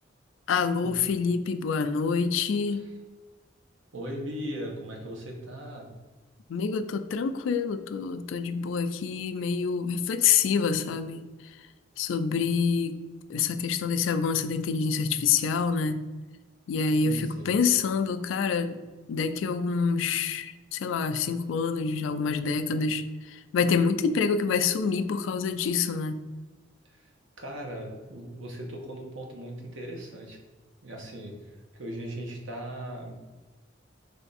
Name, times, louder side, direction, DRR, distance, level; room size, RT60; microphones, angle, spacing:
voice 1, 0.5-2.8 6.5-11.3 12.0-13.0 13.3-16.0 16.7-18.8 19.1-26.2, left 5 dB, 80° left, 11 dB, 0.3 m, -27 dB
voice 2, 3.9-5.9 16.9-17.5 26.9-27.0 27.4-30.4 30.8-33.1, equal, 85° right, 1 dB, 0.9 m, -38 dB
3.5 x 3.4 x 4.0 m, 1.3 s
head